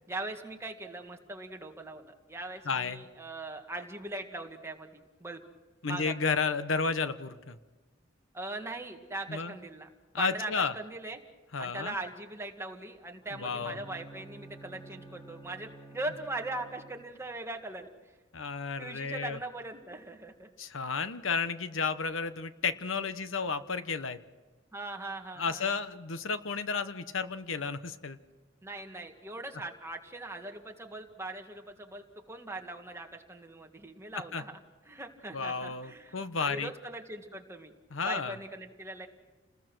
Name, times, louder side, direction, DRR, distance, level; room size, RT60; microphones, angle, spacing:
voice 1, 0.1-5.4 5.9-6.3 8.3-9.9 10.2-11.2 11.6-17.9 18.8-20.5 24.7-25.7 28.6-34.6 34.9-37.7 38.0-39.1, right 2 dB, 15° right, 3 dB, 1.9 m, -40 dB
voice 2, 2.6-3.0 5.8-7.6 9.3-9.5 10.1-10.7 11.5-12.0 13.3-13.8 18.3-19.4 20.6-24.2 25.4-28.2 34.3-34.4 35.3-36.7 37.9-38.4, left 5 dB, 80° left, 11 dB, 1.1 m, -32 dB
Bowed string instrument, 13.2-17.3, right 2 dB, 20° left, 2.8 m, -51 dB
29.5 x 20.5 x 6.2 m, 1.2 s
head